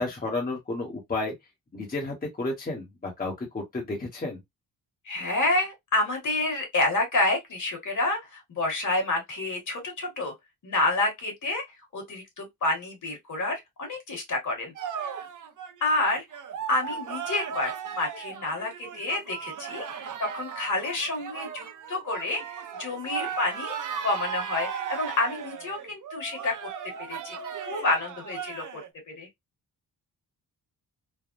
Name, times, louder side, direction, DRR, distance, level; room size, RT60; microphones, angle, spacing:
voice 1, 0.0-1.3 1.7-4.4, left 2 dB, 25° left, 1.0 m, -32 dB
voice 2, 5.0-10.3 10.6-11.6 11.9-14.7 15.8-16.2 16.7-19.9 20.2-23.8 24.0-26.7 27.1-27.4 27.7-28.8 29.2-29.3, left 2 dB, 50° left, 1.6 m, -28 dB
sound 1, 14.8-28.9, right 7 dB, 55° right, 0.7 m, -37 dB
3.4 x 2.1 x 2.5 m
wide cardioid pair, 120°, 37 cm